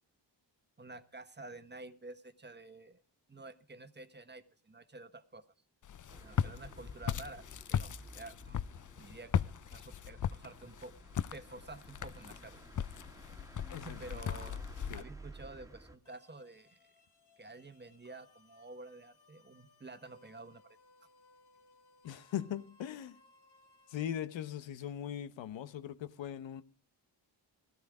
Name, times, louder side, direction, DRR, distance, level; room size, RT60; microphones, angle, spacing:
voice 1, 0.8-3.0 3.3-5.4 6.2-7.4 7.7-8.6 9.0-10.9 11.3-12.6 13.8-14.6 14.9-16.8 17.4-20.8, right 2 dB, 25° right, 1.2 m, -50 dB
Walk footsteps, 5.8-15.0, left 8 dB, 45° left, 0.6 m, -38 dB
sound 1, 6.1-16.0, right 2 dB, 10° right, 1.6 m, -54 dB
sound 2, 16.0-24.0, left 3 dB, 70° left, 4.1 m, -65 dB
voice 2, 22.0-23.2 23.9-26.6, left 10 dB, 90° left, 1.0 m, -40 dB
13.5 x 13.0 x 4.8 m
cardioid pair, 65°, 44 cm